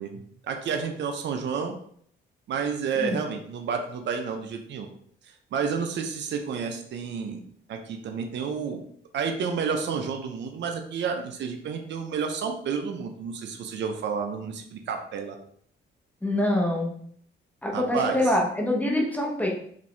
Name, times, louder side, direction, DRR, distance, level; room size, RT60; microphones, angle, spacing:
voice 1, 0.0-1.8 2.5-4.9 5.5-7.4 7.7-8.8 9.1-15.4 17.7-18.2, right 6 dB, 65° right, 4 dB, 0.7 m, -30 dB
voice 2, 16.2-16.9 17.6-19.5, left 1 dB, 10° left, -1 dB, 1.1 m, -25 dB
5.0 x 2.7 x 3.3 m, 0.63 s
cardioid pair, 90°, 20 cm